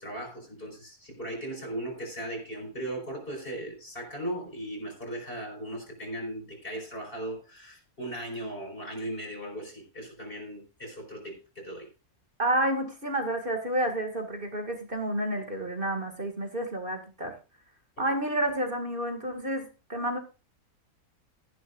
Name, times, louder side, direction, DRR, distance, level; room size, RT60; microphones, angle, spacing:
voice 1, 0.0-11.9, right 1 dB, 35° left, 5.3 m, -37 dB
voice 2, 12.4-17.3 18.0-20.2, right 1 dB, 35° right, 2.4 m, -30 dB
14.5 x 11.0 x 2.6 m
omnidirectional pair, 1.6 m